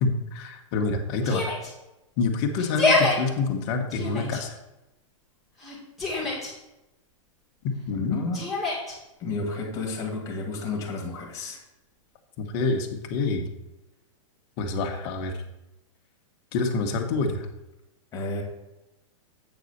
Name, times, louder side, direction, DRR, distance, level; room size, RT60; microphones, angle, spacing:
voice 1, 0.0-1.5 2.2-4.5 7.9-8.2 12.4-13.5 14.6-15.4 16.5-17.4, left 4 dB, 40° left, 3 dB, 1.2 m, -27 dB
Yell, 1.2-1.7 2.6-3.2 3.9-4.4 5.6-6.5 8.3-8.9, left 3 dB, ahead, 2.1 m, -25 dB
voice 2, 7.9-8.5 9.2-11.6 18.1-18.4, left 3 dB, 15° left, -1 dB, 1.9 m, -32 dB
8.3 x 4.1 x 6.6 m, 0.95 s
supercardioid pair, 160°, 17 cm